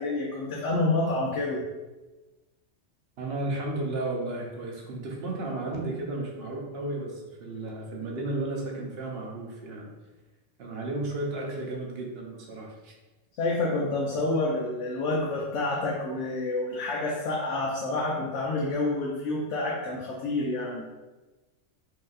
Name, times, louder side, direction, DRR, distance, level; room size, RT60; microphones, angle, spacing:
voice 1, 0.0-1.6 13.4-20.8, left 2 dB, 85° left, -3 dB, 0.9 m, -28 dB
voice 2, 3.2-9.9 10.6-12.9, right 2 dB, 65° right, -1 dB, 0.9 m, -33 dB
4.5 x 2.7 x 2.4 m, 1.2 s
omnidirectional pair, 1.2 m